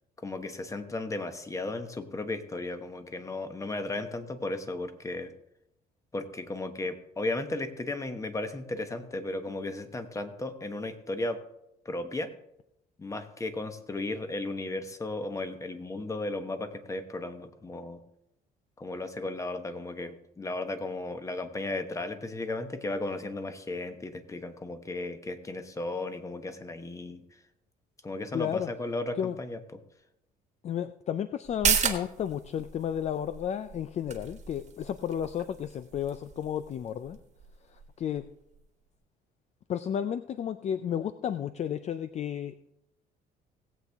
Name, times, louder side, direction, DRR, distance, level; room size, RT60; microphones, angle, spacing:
voice 1, 0.2-5.3 6.1-11.4 11.8-12.3 13.0-18.0 18.8-27.2 28.0-29.6, left 2 dB, 20° left, 9 dB, 1.2 m, -35 dB
voice 2, 28.3-28.7 29.2-29.4 30.6-37.2 38.0-38.3 39.7-42.5, left 9 dB, 40° left, 12 dB, 0.4 m, -32 dB
sound 1, 31.4-38.6 38.9-39.0, right 7 dB, 40° right, 1.4 m, -34 dB
17.5 x 8.1 x 3.5 m, 0.82 s
cardioid pair, 110°, 17 cm